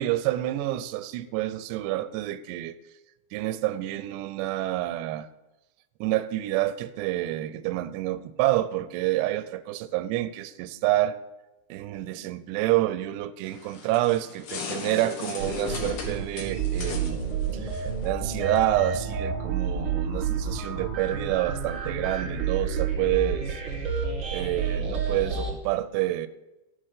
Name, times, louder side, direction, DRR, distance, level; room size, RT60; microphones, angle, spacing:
voice 1, 0.0-2.8 3.3-5.3 6.0-11.2 11.7-17.2 17.5-23.6 24.3-26.3, right 15 dB, 80° right, 14 dB, 2.6 m, -28 dB
sound 1, 13.4-18.7, left 5 dB, 65° left, 3.1 m, -38 dB
sound 2, 15.4-25.5, right 5 dB, 45° right, 1.8 m, -30 dB
14.0 x 5.9 x 6.5 m, 0.99 s
omnidirectional pair, 5.3 m